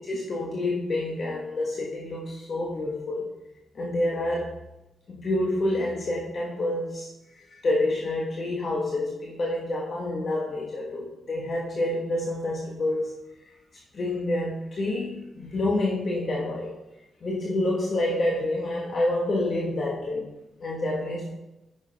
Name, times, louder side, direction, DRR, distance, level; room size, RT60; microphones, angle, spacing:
voice 1, 0.1-3.3 3.7-4.5 5.1-7.1 7.3-13.2 13.9-16.8 17.2-20.3 20.6-21.3, left 1 dB, 50° left, -3 dB, 1.4 m, -28 dB
8.7 x 6.1 x 3.4 m, 0.96 s
cardioid pair, 70°, 0 cm